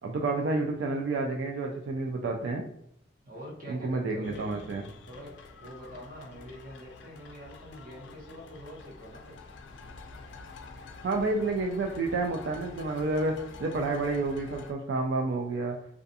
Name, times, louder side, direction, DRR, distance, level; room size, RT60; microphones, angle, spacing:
voice 1, 0.0-2.7 3.7-4.8 11.0-15.8, right 3 dB, 75° right, 2 dB, 0.3 m, -30 dB
voice 2, 3.2-4.6 5.1-9.4, equal, 50° right, -3 dB, 0.9 m, -45 dB
sound 1, 4.2-14.7, left 4 dB, 85° left, 0.4 m, -48 dB
2.4 x 2.3 x 2.6 m, 0.74 s
head